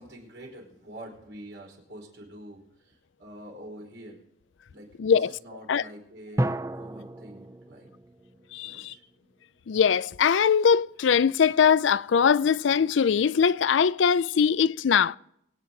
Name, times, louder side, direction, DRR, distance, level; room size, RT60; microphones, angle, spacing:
voice 1, 0.0-4.2 4.7-7.9 8.6-9.0, right 1 dB, 70° right, 4.8 m, -46 dB
voice 2, 5.0-5.3 5.7-5.8 8.5-8.9 9.7-15.2, left 7 dB, 75° left, 0.4 m, -21 dB
sound 1, 6.4-9.1, right 1 dB, 15° right, 0.4 m, -33 dB
24.5 x 9.2 x 3.9 m
head